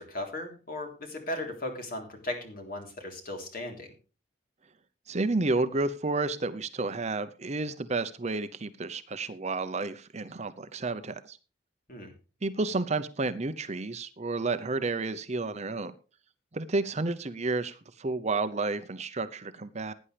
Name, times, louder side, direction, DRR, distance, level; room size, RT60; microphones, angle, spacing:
voice 1, 0.0-3.9 11.9-12.1, left 1 dB, 45° left, 3 dB, 3.6 m, -37 dB
voice 2, 5.1-11.4 12.4-15.9 16.5-19.9, right 3 dB, 35° right, 11 dB, 0.7 m, -31 dB
17.0 x 9.9 x 3.3 m, 0.34 s
head